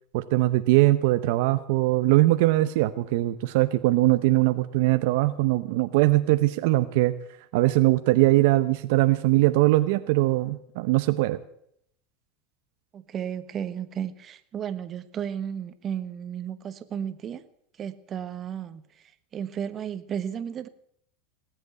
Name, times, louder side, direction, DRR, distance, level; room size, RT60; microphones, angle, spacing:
voice 1, 0.1-7.1 7.5-11.4, right 18 dB, 70° right, 0.8 m, -21 dB
voice 2, 12.9-17.4 17.8-20.7, right 8 dB, 35° right, 1.2 m, -34 dB
19.0 x 8.0 x 8.2 m
hypercardioid pair, 105°, 0 cm